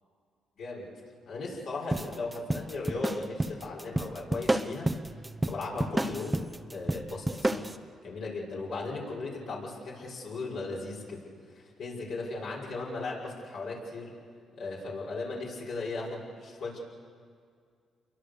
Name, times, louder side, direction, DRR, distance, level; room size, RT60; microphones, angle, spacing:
voice 1, 0.6-0.9 1.3-4.9 5.5-7.7 8.0-11.2 11.5-14.1 14.6-16.8, left 3 dB, 70° left, -3 dB, 6.0 m, -37 dB
sound 1, 1.9-7.8, right 1 dB, 10° right, 0.9 m, -31 dB
28.0 x 23.0 x 6.8 m, 2.2 s
cardioid pair, 90°, 0 cm